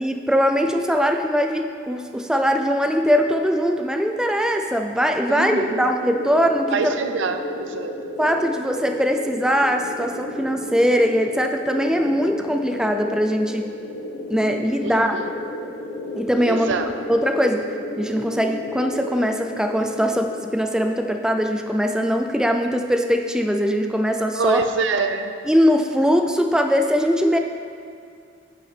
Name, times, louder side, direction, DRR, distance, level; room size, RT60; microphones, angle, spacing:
voice 1, 0.0-6.9 8.2-13.7 14.3-15.2 16.2-16.7 17.1-17.7 18.0-24.6 25.5-27.4, equal, 5° right, 5 dB, 0.4 m, -21 dB
voice 2, 5.3-5.9 6.7-7.9 14.8-15.3 16.4-16.9 24.3-25.3, right 4 dB, 70° right, 8 dB, 0.5 m, -25 dB
sound 1, 5.6-20.3, left 1 dB, 60° left, 1.2 m, -33 dB
10.0 x 5.6 x 4.2 m, 2.3 s
head